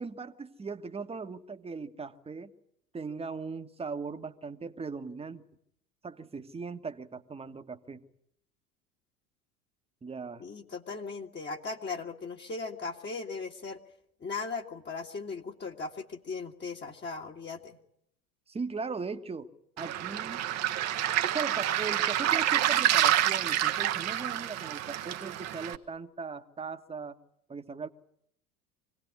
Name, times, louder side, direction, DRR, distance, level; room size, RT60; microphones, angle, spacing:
voice 1, 0.0-2.5 2.9-5.4 6.0-8.0 10.0-10.4 18.5-19.5 19.8-20.4 21.2-27.2 27.5-27.9, right 4 dB, 15° right, 7 dB, 1.6 m, -39 dB
voice 2, 10.4-13.8 14.2-17.8, left 4 dB, 25° left, 0 dB, 2.0 m, -38 dB
Waves surf, 19.8-25.8, right 12 dB, 35° right, 1.3 m, -28 dB
26.0 x 18.5 x 9.8 m, 0.74 s
figure-of-eight pair, 75°, 45 cm